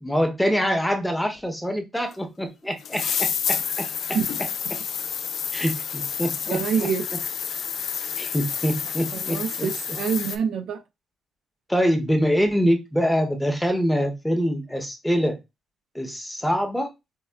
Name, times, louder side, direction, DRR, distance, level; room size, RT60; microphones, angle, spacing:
voice 1, 0.0-3.9 4.7-4.8 5.5-6.9 8.2-9.7 11.7-15.4 15.9-16.9, equal, 5° left, 0.7 m, -24 dB
sound 1, 2.1-2.2 2.8-10.4, left 7 dB, 65° left, 0.4 m, -29 dB
voice 2, 6.5-7.0 9.1-10.8, right 6 dB, 75° right, 0.5 m, -26 dB
4.3 x 2.3 x 2.2 m
cardioid pair, 90°, 0 cm